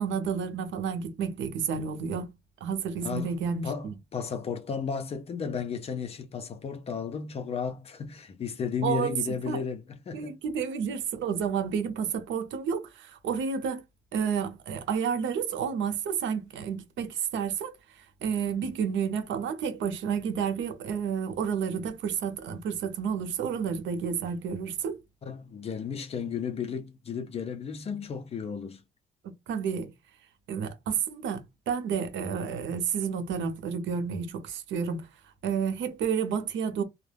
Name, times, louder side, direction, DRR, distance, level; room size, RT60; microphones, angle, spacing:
voice 1, 0.0-2.3 2.6-4.0 8.8-9.1 9.5-9.6 10.1-13.8 14.1-25.0 29.2-29.9 30.5-35.1 35.4-36.8, right 7 dB, 75° right, 0.6 m, -30 dB
voice 2, 3.6-10.3 25.2-28.8, left 6 dB, 30° left, 0.4 m, -34 dB
2.3 x 2.1 x 3.2 m
cardioid pair, 170°, 20 cm